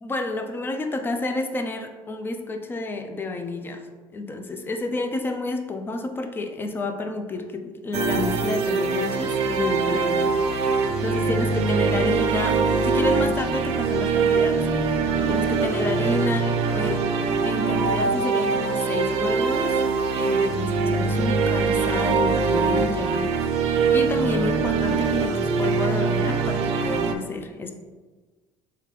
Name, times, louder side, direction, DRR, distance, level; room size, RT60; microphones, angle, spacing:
voice 1, 0.0-3.9 4.1-10.7 11.0-14.6 15.3-17.1 17.4-19.8 20.2-23.2 23.9-27.7, left 2 dB, 20° left, 6 dB, 0.4 m, -30 dB
sound 1, 7.9-27.1, right 4 dB, 70° right, 0.4 m, -23 dB
3.6 x 3.3 x 3.1 m, 1.3 s
cardioid pair, 110°, 11 cm